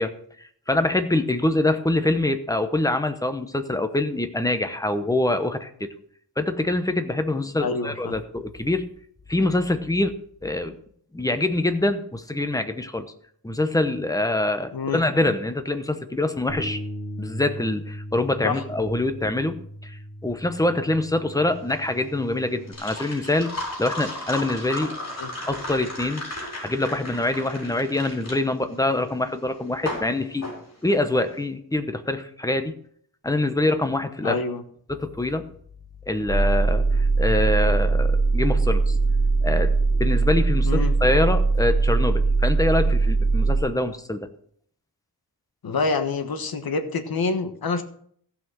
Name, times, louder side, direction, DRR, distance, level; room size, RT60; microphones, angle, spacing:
voice 1, 0.0-5.9 6.4-8.8 9.3-10.1 10.4-10.8 11.1-13.1 13.4-16.8 17.2-23.5 23.8-24.9 25.4-26.2 26.6-30.5 30.8-32.7 33.2-34.4 34.9-35.4 36.1-39.0 39.4-39.7 40.0-44.3, left 2 dB, 10° left, 9 dB, 0.9 m, -25 dB
voice 2, 7.6-8.1 14.7-15.0 18.4-18.6 25.2-25.3 34.2-34.6 40.6-40.9 45.6-47.8, left 4 dB, 65° left, 8 dB, 1.3 m, -26 dB
Bass guitar, 16.5-22.7, equal, 40° right, 1.9 m, -38 dB
sound 1, 21.5-31.3, left 1 dB, 40° left, 4.7 m, -35 dB
sound 2, 36.3-43.6, right 3 dB, 5° right, 6.6 m, -20 dB
15.0 x 5.9 x 6.2 m, 0.62 s
wide cardioid pair, 160°, 39 cm